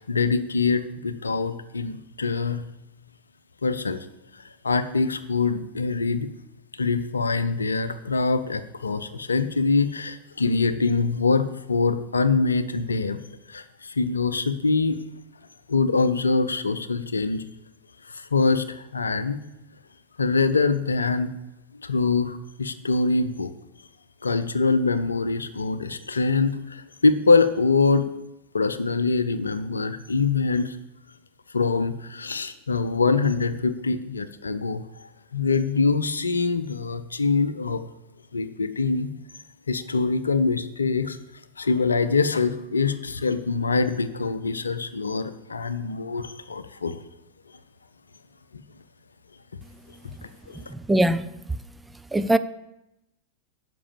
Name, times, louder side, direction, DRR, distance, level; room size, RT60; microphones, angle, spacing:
voice 1, 0.0-2.6 3.6-4.1 4.6-6.3 6.8-13.2 13.5-15.0 15.7-17.4 18.1-19.4 20.2-21.3 21.7-23.5 24.2-28.1 28.5-30.8 31.5-34.8 35.3-37.8 38.3-39.1 39.7-41.2 41.6-47.0 50.2-50.6, left 4 dB, 75° left, 0.6 m, -24 dB
voice 2, 50.7-51.3 52.1-52.4, right 1 dB, 5° right, 0.4 m, -21 dB
9.8 x 6.1 x 7.0 m
figure-of-eight pair, 90°, 0 cm